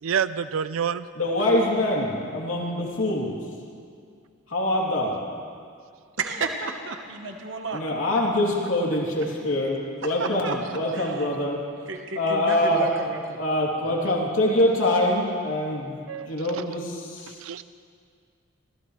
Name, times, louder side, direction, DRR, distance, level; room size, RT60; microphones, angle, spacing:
voice 1, 0.0-1.1 16.1-16.6 17.3-17.6, right 7 dB, 80° right, 14 dB, 0.4 m, -28 dB
voice 2, 1.2-3.3 4.5-5.2 7.7-11.6 12.2-12.8 13.4-16.0 16.3-17.4, left 1 dB, 75° left, -3 dB, 3.0 m, -24 dB
voice 3, 6.2-7.8 10.0-10.5 10.9-11.3 11.9-13.4 13.9-14.1, right 3 dB, 65° right, 4 dB, 1.2 m, -32 dB
26.0 x 16.0 x 3.2 m, 2.2 s
head